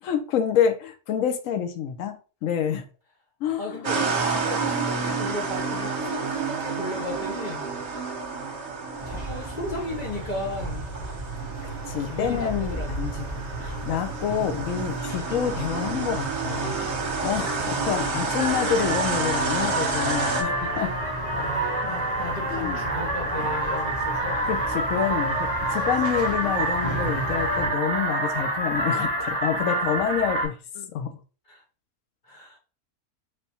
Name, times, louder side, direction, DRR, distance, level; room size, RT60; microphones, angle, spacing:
voice 1, 0.0-2.9 3.4-3.8 11.9-16.8 17.2-20.9 22.5-22.8 23.4-23.5 24.4-31.2, left 8 dB, 70° left, 0.9 m, -28 dB
voice 2, 3.6-7.8 9.0-10.8 12.0-12.9 14.3-14.5 17.6-18.2 21.3-24.4 31.5-31.6 32.2-32.6, left 1 dB, 45° left, 0.7 m, -35 dB
sound 1, 3.8-20.4, right 4 dB, 55° right, 1.0 m, -30 dB
sound 2, 9.0-27.7, right 1 dB, 25° left, 2.5 m, -36 dB
sound 3, 11.7-12.7 12.9-13.7 14.3-14.4 14.7-15.0 15.3-30.5, right 1 dB, 10° right, 1.5 m, -28 dB
4.1 x 3.4 x 2.8 m
omnidirectional pair, 1.6 m